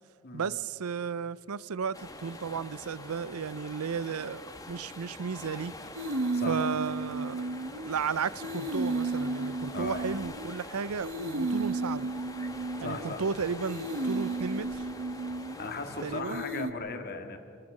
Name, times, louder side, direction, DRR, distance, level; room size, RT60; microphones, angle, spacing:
voice 1, 0.3-5.7 6.5-7.4 7.8-12.1 12.8-14.9 16.0-16.4, right 6 dB, 90° right, 0.6 m, -34 dB
sound 1, 1.9-16.2, left 2 dB, 15° left, 1.4 m, -45 dB
sound 2, 5.9-8.0 8.4-10.6 11.0-13.2 13.6-15.8 16.3-16.7, right 2 dB, 60° right, 1.1 m, -33 dB
voice 2, 12.8-13.2 15.6-17.4, left 3 dB, 45° left, 2.1 m, -37 dB
27.0 x 19.5 x 6.5 m
head